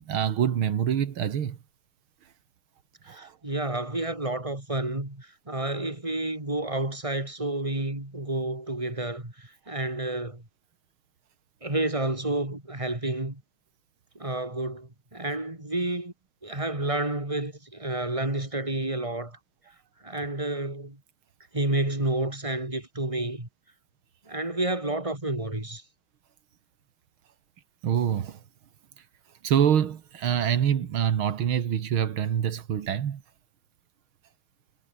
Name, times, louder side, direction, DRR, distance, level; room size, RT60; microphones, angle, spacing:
voice 1, 0.0-1.6 3.1-3.3 27.8-28.4 29.4-33.2, right 9 dB, 90° right, 2.4 m, -25 dB
voice 2, 3.0-10.4 11.6-13.4 14.2-16.1 16.4-19.4 20.0-21.0 21.5-23.5 24.3-25.8, right 2 dB, 15° right, 3.9 m, -30 dB
omnidirectional pair, 2.2 m